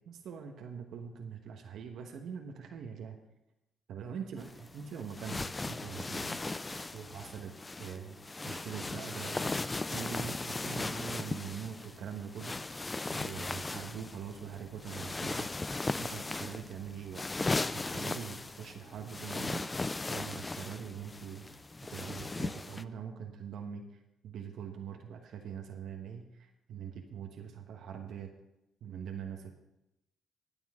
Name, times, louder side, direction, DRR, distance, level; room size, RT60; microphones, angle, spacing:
voice 1, 0.0-3.2 3.9-6.4 6.9-7.5 7.8-9.5 9.9-12.5 13.1-15.5 16.0-17.2 17.7-19.6 20.1-21.5 21.9-28.3 28.8-29.5, right 7 dB, 75° right, 3 dB, 1.2 m, -43 dB
sound 1, 4.4-22.8, left 3 dB, 20° left, 0.4 m, -38 dB
21.0 x 7.1 x 3.7 m, 0.91 s
cardioid pair, 90°, 0 cm